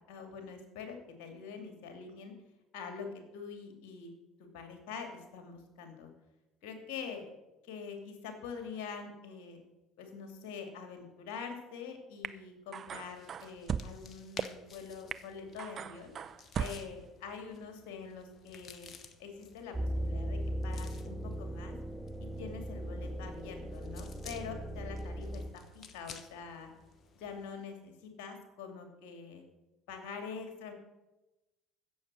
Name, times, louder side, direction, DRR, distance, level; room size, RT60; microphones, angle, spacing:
voice 1, 0.1-2.3 2.7-4.1 4.4-6.1 6.6-7.3 7.6-9.6 10.0-16.1 16.6-18.9 19.2-21.7 22.2-26.7 27.1-29.4 29.9-30.7, left 5 dB, 60° left, 5 dB, 2.6 m, -45 dB
sound 1, 12.2-12.3 12.7-13.9 14.4-14.5 15.1-15.2 15.6-16.9, right 8 dB, 40° right, 0.6 m, -37 dB
sound 2, 12.9-27.6, left 5 dB, 40° left, 1.2 m, -55 dB
sound 3, 19.7-25.5, equal, ahead, 1.1 m, -38 dB
15.5 x 7.1 x 6.3 m, 1.0 s
figure-of-eight pair, 60°, 0 cm